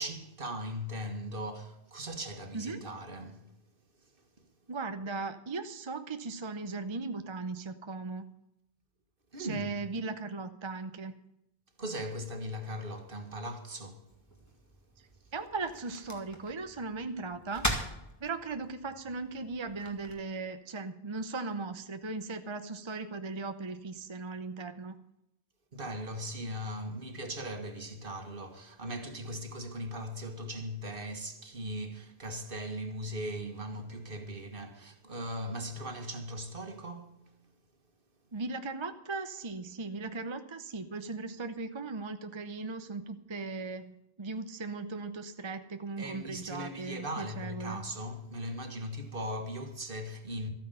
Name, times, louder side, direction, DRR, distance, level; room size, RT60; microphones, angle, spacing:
voice 1, 0.0-3.5 4.4-4.5 9.3-9.8 11.8-14.0 25.7-37.2 46.0-50.5, equal, 55° right, 1.9 m, -39 dB
voice 2, 2.5-2.9 4.7-8.2 9.4-11.1 15.0-17.7 18.2-24.9 38.3-47.8, right 3 dB, 30° right, 0.7 m, -38 dB
sound 1, 14.1-20.1, equal, 15° left, 2.0 m, -40 dB
13.5 x 9.2 x 6.8 m
omnidirectional pair, 1.1 m